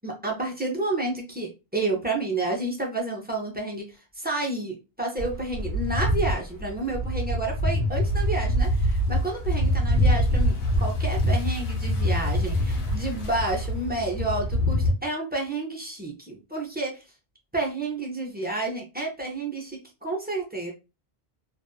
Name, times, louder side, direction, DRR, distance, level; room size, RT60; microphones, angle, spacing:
voice 1, 0.0-17.0 17.5-20.7, right 2 dB, 15° right, -2 dB, 0.5 m, -30 dB
sound 1, 5.2-14.9, equal, 70° left, 1.0 m, -25 dB
2.5 x 2.4 x 2.3 m, 0.28 s
omnidirectional pair, 1.0 m